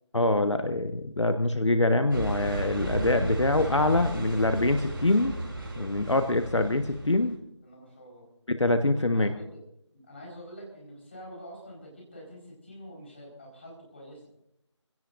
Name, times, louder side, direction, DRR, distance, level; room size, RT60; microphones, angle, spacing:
voice 1, 0.1-5.4 5.8-7.3 8.5-9.3, left 2 dB, 75° left, 7 dB, 1.3 m, -24 dB
sound 1, 2.1-7.2, right 1 dB, 50° right, 3.5 m, -34 dB
voice 2, 7.6-8.3 9.1-9.6 9.9-14.3, equal, 25° left, -3 dB, 4.6 m, -46 dB
25.5 x 17.0 x 2.6 m, 0.74 s
figure-of-eight pair, 175°, 15 cm